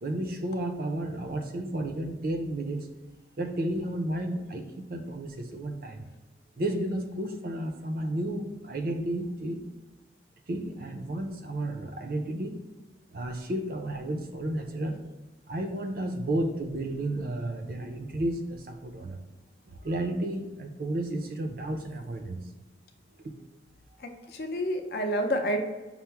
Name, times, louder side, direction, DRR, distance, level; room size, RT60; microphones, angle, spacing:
voice 1, 0.0-2.9 3.4-6.0 6.6-9.6 10.5-12.6 13.1-15.0 15.5-19.2 19.7-22.4, right 1 dB, 50° right, 5 dB, 0.4 m, -32 dB
voice 2, 24.0-25.6, equal, 60° left, 4 dB, 0.5 m, -29 dB
5.7 x 2.0 x 4.5 m, 1.2 s
head